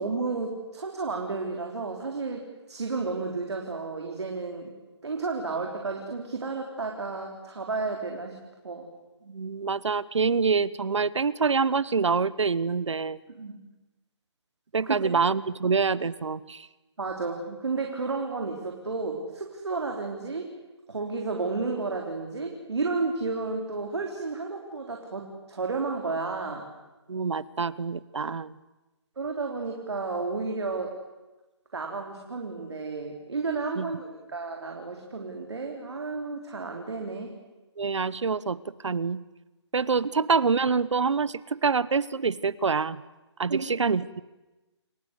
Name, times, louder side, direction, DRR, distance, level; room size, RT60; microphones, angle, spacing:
voice 1, 0.0-4.7 5.0-8.4 8.6-8.9 13.3-13.6 14.8-15.2 17.0-20.5 20.9-26.7 29.2-30.9 31.7-37.3 43.5-43.7, right 3 dB, 70° right, 2 dB, 3.6 m, -32 dB
voice 2, 9.3-13.2 14.7-16.7 27.1-28.5 33.8-33.9 37.8-39.2 39.7-43.0 43.4-44.2, right 5 dB, 85° right, 19 dB, 1.1 m, -26 dB
29.0 x 18.5 x 8.2 m, 1.1 s
hypercardioid pair, 180°, 15 cm